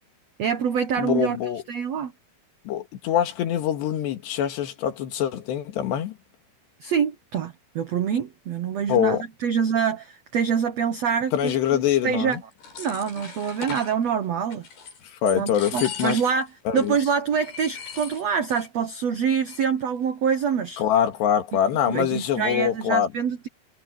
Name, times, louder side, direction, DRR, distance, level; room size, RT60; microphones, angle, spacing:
voice 1, 0.4-1.4 1.7-2.1 6.8-12.4 12.8-14.6 15.4-16.5 16.7-20.8 21.9-23.5, right 7 dB, 80° right, 1.5 m, -25 dB
voice 2, 1.0-1.6 2.7-6.1 8.9-9.2 11.3-12.4 15.2-16.2 16.7-17.0 20.8-23.1, left 10 dB, 85° left, 4.1 m, -24 dB
sound 1, 12.3-14.0 14.5-15.0 15.3-16.5 16.8-16.9 17.3-18.7 18.9-19.0 19.3-19.8, left 5 dB, 65° left, 7.7 m, -38 dB
omnidirectional pair, 4.8 m